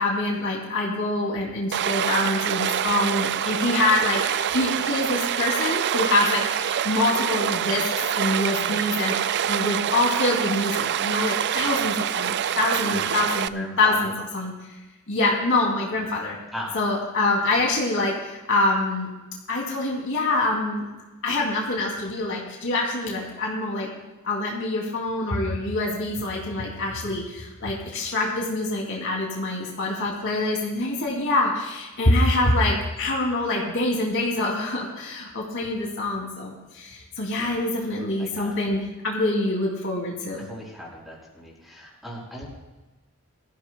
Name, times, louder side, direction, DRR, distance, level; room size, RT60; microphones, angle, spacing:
voice 1, 0.0-7.8 8.1-14.5 15.1-16.4 16.7-19.1 19.5-20.9 21.2-23.9 24.2-40.5, left 2 dB, 60° left, -2 dB, 2.7 m, -25 dB
Stream, 1.7-13.5, right 9 dB, 50° right, 0.4 m, -26 dB
voice 2, 12.8-14.1 16.0-16.1 16.5-16.8 37.4-37.5 37.9-38.6 40.4-42.5, equal, ahead, -3 dB, 5.5 m, -38 dB
22.5 x 15.0 x 2.3 m, 1.1 s
head